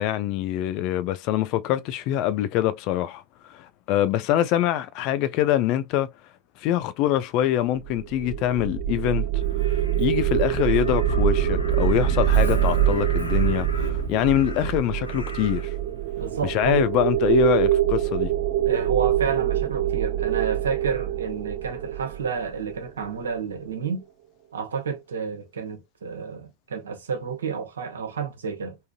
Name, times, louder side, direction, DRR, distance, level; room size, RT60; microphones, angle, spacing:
voice 1, 0.0-6.1 6.6-9.4 9.7-15.7 16.4-18.3, left 12 dB, 40° left, 0.5 m, -24 dB
sound 1, 7.8-23.0, right 11 dB, 40° right, 0.5 m, -24 dB
Crow, 9.4-15.7 17.1-17.3, left 2 dB, 80° left, 0.8 m, -40 dB
voice 2, 16.2-16.8 18.6-24.0 24.5-28.8, right 6 dB, 65° right, 1.0 m, -30 dB
3.6 x 2.6 x 2.3 m
figure-of-eight pair, 90°, 0 cm